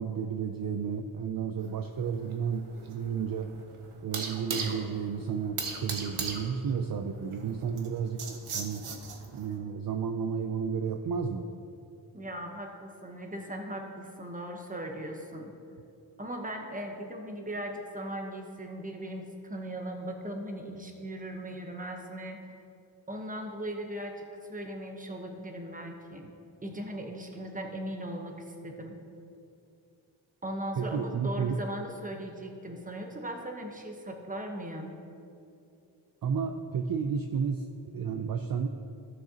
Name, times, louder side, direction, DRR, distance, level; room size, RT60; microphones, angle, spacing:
voice 1, 0.0-3.5 4.0-8.8 9.3-11.5 30.7-31.6 36.2-38.7, right 6 dB, 50° right, 6 dB, 0.5 m, -32 dB
sound 1, 1.6-9.5, right 4 dB, 75° right, 1.0 m, -39 dB
voice 2, 12.1-15.5 16.2-22.4 23.1-24.2 24.5-26.3 26.6-28.3 28.6-28.9 30.4-35.0, right 1 dB, 15° right, 3 dB, 1.0 m, -38 dB
14.5 x 6.4 x 2.9 m, 2.6 s
wide cardioid pair, 95°, 49 cm